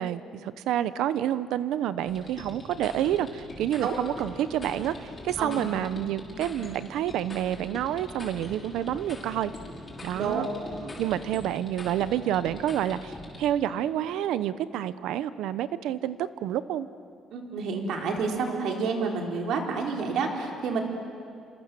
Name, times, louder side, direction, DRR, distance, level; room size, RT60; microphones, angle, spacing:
voice 1, 0.0-9.5 10.0-10.5 11.0-16.9, right 11 dB, 90° right, 14 dB, 0.9 m, -29 dB
sound 1, 2.1-13.4, left 2 dB, 20° left, 6.1 m, -42 dB
voice 2, 17.3-20.8, right 5 dB, 70° right, 2 dB, 4.0 m, -29 dB
29.0 x 26.5 x 7.6 m, 2.2 s
cardioid pair, 145°, 0 cm